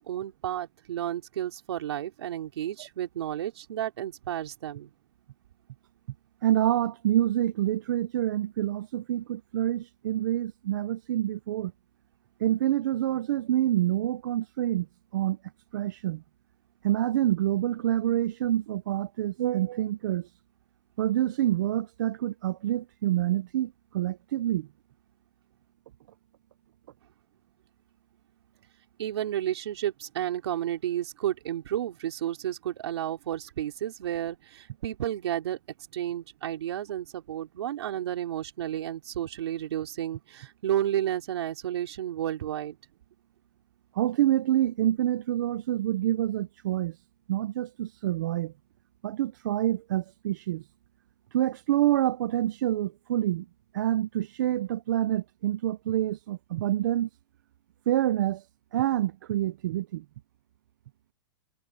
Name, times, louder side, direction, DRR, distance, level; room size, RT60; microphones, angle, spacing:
voice 1, 0.0-4.9 29.0-35.6 35.9-42.8, right 11 dB, 65° right, 3.5 m, -32 dB
voice 2, 6.4-11.7 12.4-14.9 15.1-15.4 15.7-16.2 16.8-20.3 21.0-24.7 43.9-47.0 47.3-48.5 49.0-50.6 51.3-53.5 53.7-57.1 57.9-58.4 58.7-60.0, right 13 dB, 45° right, 0.5 m, -27 dB
supercardioid pair, 180°, 15 cm